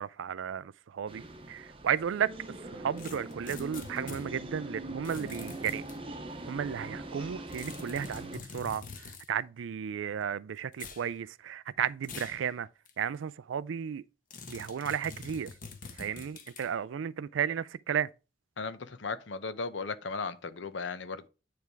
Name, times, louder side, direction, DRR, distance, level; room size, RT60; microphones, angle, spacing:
voice 1, 0.0-2.3 2.7-5.8 6.5-12.7 13.0-14.0 14.5-15.5 16.0-18.1, right 8 dB, 85° right, 0.4 m, -34 dB
sound 1, 1.1-8.4, right 2 dB, 30° right, 0.8 m, -42 dB
sound 2, 3.0-4.3 5.0-6.0 7.5-9.3 10.7-11.1 12.0-12.4 12.9-13.0 14.3-16.7, left 4 dB, 45° left, 1.2 m, -45 dB
voice 2, 18.6-21.3, left 4 dB, 70° left, 0.7 m, -36 dB
9.6 x 3.4 x 4.6 m
head